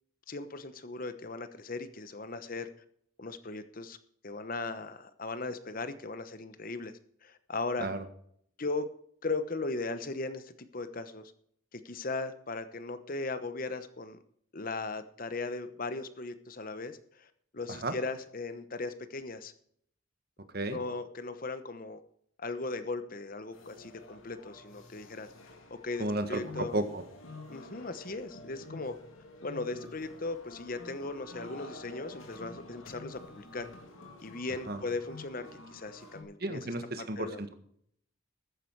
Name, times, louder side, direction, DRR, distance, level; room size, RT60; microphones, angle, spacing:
voice 1, 0.3-2.7 3.2-4.0 4.2-6.9 7.2-7.9 8.6-8.9 9.2-11.3 11.7-14.2 14.5-19.5 20.7-22.0 22.4-26.8 27.5-28.9 29.4-33.7 34.2-36.6 37.2-37.4, left 3 dB, 45° left, 11 dB, 1.0 m, -38 dB
sound 1, 23.5-36.2, left 2 dB, 90° left, 3.0 m, -49 dB
voice 2, 26.0-27.0 34.7-34.8 36.4-37.5, right 1 dB, 50° right, 9 dB, 1.5 m, -33 dB
13.5 x 9.7 x 4.7 m, 0.66 s
head